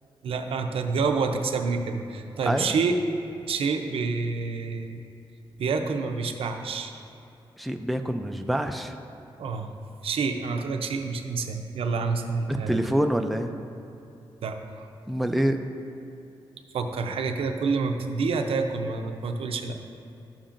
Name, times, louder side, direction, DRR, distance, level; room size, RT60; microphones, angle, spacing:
voice 1, 0.2-3.0 3.5-5.0 5.6-6.9 9.4-9.7 10.0-12.8 14.4-14.9 16.7-19.8, right 4 dB, 80° right, 5 dB, 0.6 m, -28 dB
voice 2, 7.6-9.0 12.5-13.5 15.1-15.6, equal, ahead, 5 dB, 0.4 m, -26 dB
12.0 x 7.2 x 2.5 m, 2.8 s
wide cardioid pair, 110°, 9 cm